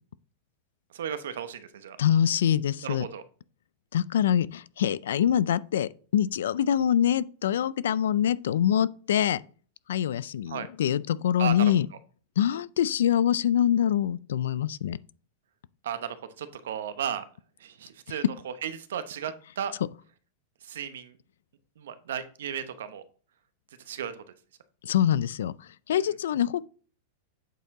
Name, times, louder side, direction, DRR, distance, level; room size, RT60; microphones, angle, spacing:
voice 1, 0.9-2.0 2.8-3.2 10.5-10.7 11.4-11.7 15.8-17.2 17.6-19.7 20.6-21.2 21.8-23.0 23.9-24.2 25.9-26.0, right 8 dB, 85° right, 0.8 m, -35 dB
voice 2, 2.0-3.1 3.9-9.4 9.9-11.9 12.4-15.0 24.8-26.6, left 10 dB, 90° left, 0.4 m, -25 dB
8.0 x 4.6 x 3.6 m
supercardioid pair, 180°, 0 cm